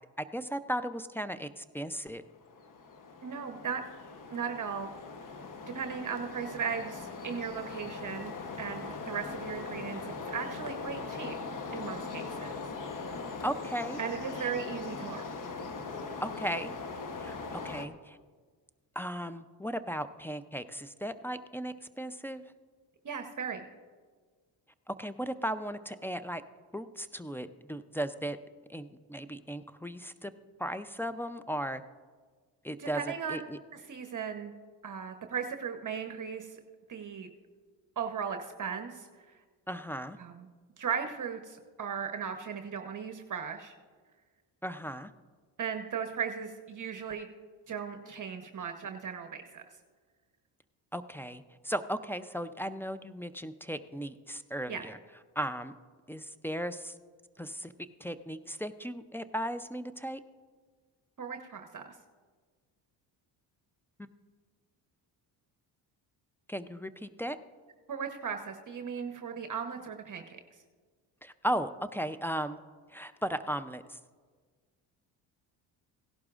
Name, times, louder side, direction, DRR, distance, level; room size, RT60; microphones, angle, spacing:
voice 1, 0.2-2.2 13.4-14.0 14.4-14.5 16.2-16.7 17.2-18.2 19.0-22.4 24.9-26.4 26.7-28.4 28.7-30.3 30.6-31.8 32.6-33.6 39.7-40.2 44.6-45.1 50.9-55.0 55.4-55.7 56.1-56.9 57.4-57.7 58.0-60.2 66.5-67.4 71.2-72.6 72.9-74.0, equal, 5° left, 8 dB, 0.4 m, -36 dB
sound 1, 2.2-17.9, left 4 dB, 45° left, 1.0 m, -40 dB
voice 2, 3.2-3.8 4.3-4.9 5.7-11.4 11.7-12.5 14.0-15.2 23.0-23.6 32.8-33.5 33.9-34.5 34.8-36.6 36.9-37.3 38.0-39.1 40.2-40.5 40.8-43.7 45.6-47.3 47.7-49.6 54.7-54.8 61.2-62.0 67.9-70.4, right 7 dB, 40° right, 6 dB, 1.0 m, -37 dB
17.0 x 11.5 x 2.5 m, 1.5 s
supercardioid pair, 65°, 46 cm